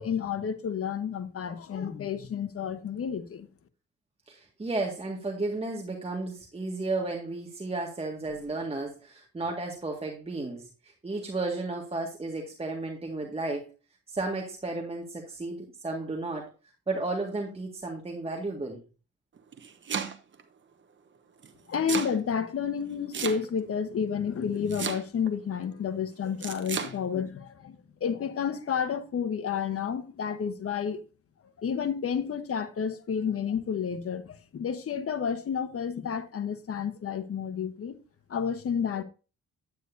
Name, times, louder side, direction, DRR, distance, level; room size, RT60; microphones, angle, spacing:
voice 1, 0.0-3.5 21.7-31.0 31.6-37.9 38.3-39.0, left 7 dB, 50° left, 1.1 m, -31 dB
voice 2, 4.3-10.7 11.0-13.7 14.1-16.5 16.9-18.8, right 2 dB, 20° right, 1.8 m, -33 dB
Domestic sounds home sounds, 19.4-20.4 21.4-22.2 23.1-23.7 24.7-25.3 26.4-26.9, right 6 dB, 40° right, 1.2 m, -33 dB
9.3 x 9.0 x 2.7 m
cardioid pair, 90°, 30 cm